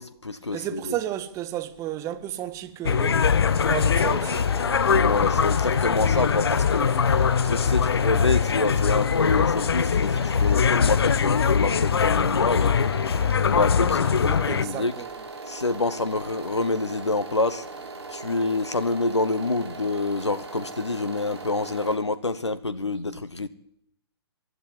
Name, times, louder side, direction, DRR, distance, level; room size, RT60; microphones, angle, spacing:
voice 1, 0.0-0.9 4.9-6.9 7.4-12.9 13.4-14.9 15.5-17.7 18.1-23.5, left 3 dB, 85° left, 1.1 m, -27 dB
voice 2, 0.5-3.3 3.7-4.4 14.1-15.2, right 12 dB, 20° right, 1.8 m, -32 dB
sound 1, 2.8-14.6, left 6 dB, 65° left, 0.8 m, -22 dB
sound 2, 3.4-22.0, right 3 dB, 70° right, 6.7 m, -39 dB
24.0 x 12.0 x 9.9 m
figure-of-eight pair, 120°, 14 cm